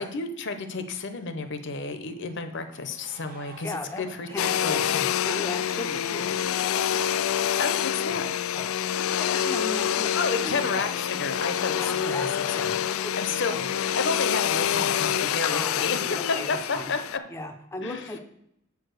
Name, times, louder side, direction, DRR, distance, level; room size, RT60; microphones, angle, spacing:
voice 1, 0.0-5.1 7.6-8.3 10.1-17.2 17.8-18.1, left 4 dB, 55° left, 8 dB, 0.7 m, -31 dB
sound 1, 2.0-17.0, left 1 dB, 40° right, 1.0 m, -44 dB
voice 2, 3.6-4.8 5.2-6.3 8.1-8.2 8.5-10.9 11.8-12.7 13.0-13.7 15.5-16.9 17.3-18.2, left 1 dB, 10° left, 4 dB, 0.5 m, -37 dB
Domestic sounds home sounds, 4.4-17.2, left 10 dB, 70° left, 0.3 m, -27 dB
7.2 x 4.7 x 6.3 m, 0.77 s
head